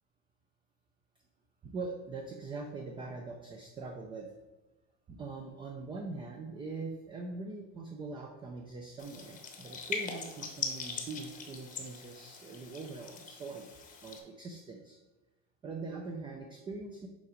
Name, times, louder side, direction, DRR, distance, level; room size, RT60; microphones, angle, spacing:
voice 1, 1.6-4.3 5.1-13.7 14.0-15.0 15.6-17.1, right 3 dB, 15° right, 3 dB, 0.3 m, -42 dB
sound 1, 9.0-14.2, left 5 dB, 25° left, 0.8 m, -41 dB
7.0 x 4.8 x 5.0 m, 1.1 s
cardioid pair, 175°, 32 cm